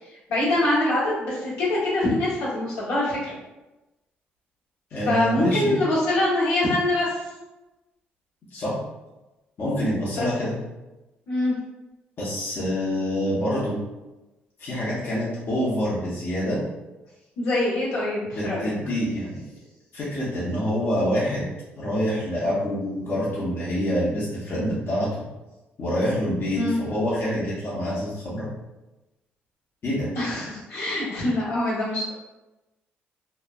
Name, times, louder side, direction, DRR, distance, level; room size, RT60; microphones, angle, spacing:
voice 1, 0.3-3.4 5.0-7.2 10.2-10.3 11.3-11.5 17.4-18.7 26.6-26.7 30.1-32.1, left 1 dB, 85° left, -9 dB, 1.2 m, -24 dB
voice 2, 4.9-5.8 8.5-8.7 9.6-10.5 12.2-13.8 14.6-16.6 18.3-19.4 19.9-21.5 21.8-25.1 25.8-28.5 29.8-30.1, equal, 55° left, -7 dB, 0.9 m, -26 dB
3.1 x 2.1 x 2.4 m, 1.0 s
supercardioid pair, 65°, 4 cm